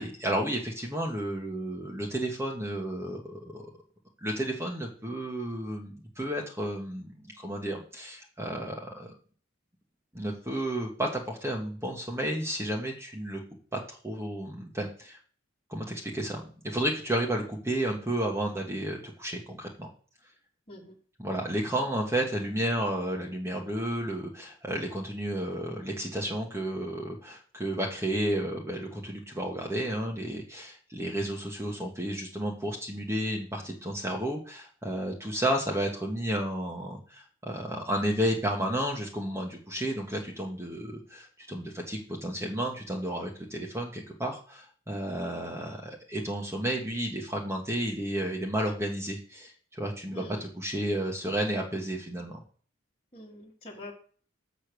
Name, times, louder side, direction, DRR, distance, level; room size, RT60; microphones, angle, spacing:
voice 1, 0.0-3.7 4.2-9.1 10.1-13.4 13.7-15.2 15.7-19.9 21.2-52.4, right 1 dB, 15° right, 0 dB, 1.3 m, -32 dB
voice 2, 50.1-50.4 53.1-53.9, left 1 dB, 30° left, -6 dB, 1.7 m, -45 dB
7.5 x 5.1 x 6.2 m, 0.43 s
head